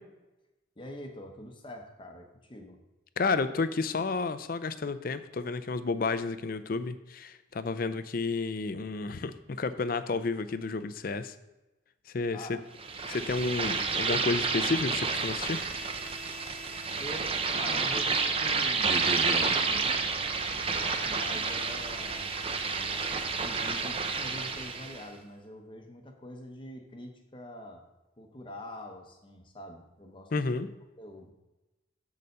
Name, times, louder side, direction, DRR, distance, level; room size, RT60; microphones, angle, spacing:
voice 1, 0.8-2.8 12.3-12.6 17.0-20.3 20.5-22.3 22.9-27.8 28.2-30.3 31.0-31.3, left 1 dB, 25° left, 4 dB, 0.8 m, -45 dB
voice 2, 3.2-11.4 12.1-12.6 13.1-15.6 30.3-30.7, left 3 dB, 45° left, 12 dB, 0.4 m, -31 dB
sound 1, 12.8-25.0, right 4 dB, 30° right, 0.5 m, -30 dB
6.8 x 4.9 x 6.6 m, 1.0 s
head